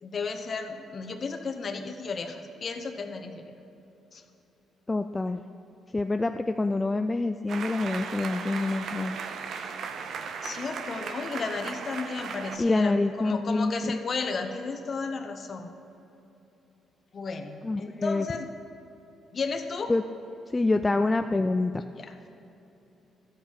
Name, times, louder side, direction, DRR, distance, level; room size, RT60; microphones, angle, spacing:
voice 1, 0.0-3.5 4.1-4.2 10.4-15.7 17.1-18.5 19.3-19.9 22.0-22.1, left 4 dB, 45° left, 6 dB, 1.0 m, -34 dB
voice 2, 4.9-5.4 5.9-9.2 12.6-14.0 17.6-18.3 19.9-20.0 20.5-21.7, left 2 dB, 20° left, 8 dB, 0.3 m, -26 dB
sound 1, 7.5-12.6, right 5 dB, 65° right, 0.7 m, -36 dB
13.0 x 8.1 x 4.7 m, 3.0 s
cardioid pair, 90°, 0 cm